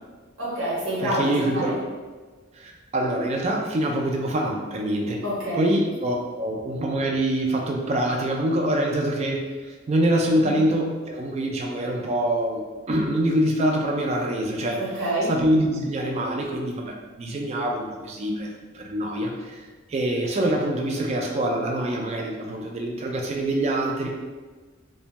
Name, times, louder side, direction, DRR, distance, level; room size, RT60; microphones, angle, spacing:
voice 1, 0.4-1.7 5.2-5.7 10.4-10.5 14.8-15.3, right 1 dB, 80° right, -9 dB, 1.0 m, -27 dB
voice 2, 1.0-1.8 2.5-5.2 5.5-12.6 12.9-14.9 15.3-18.5 18.7-24.1, right 1 dB, 30° right, 0 dB, 0.3 m, -25 dB
2.6 x 2.1 x 2.9 m, 1.4 s
head